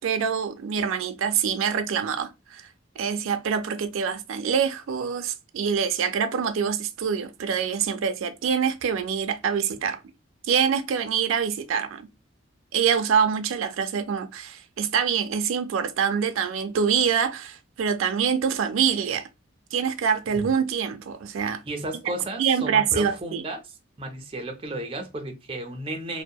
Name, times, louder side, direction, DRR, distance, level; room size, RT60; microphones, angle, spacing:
voice 1, 0.0-2.7 3.0-10.0 10.4-12.1 12.7-19.3 19.7-21.6 22.4-23.4, right 7 dB, 90° right, 0.4 m, -25 dB
voice 2, 21.6-23.6 24.0-26.2, right 1 dB, 25° right, 0.4 m, -33 dB
2.7 x 2.0 x 2.2 m
head